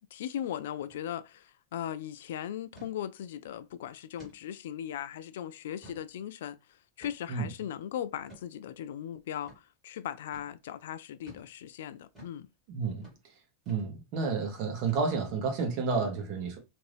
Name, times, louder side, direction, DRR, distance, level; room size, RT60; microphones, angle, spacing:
voice 1, 0.1-6.6 7.0-12.5, left 10 dB, 70° left, 0.3 m, -38 dB
sound 1, 0.8-1.0 1.3-1.4 1.8-2.0 2.7-2.9 3.4-3.6 4.2-4.4 4.9-5.0 5.5-6.1 7.0-7.4 8.3-8.5 9.4-9.6 10.3-10.5 11.3-11.5 12.1-12.4 13.0-13.2 13.7-13.9 14.2-14.4 14.9-15.3, right 1 dB, 5° right, 1.5 m, -53 dB
voice 2, 12.7-13.3 13.7-16.6, right 4 dB, 40° right, 0.9 m, -31 dB
2.6 x 2.6 x 3.2 m
supercardioid pair, 175°, 0 cm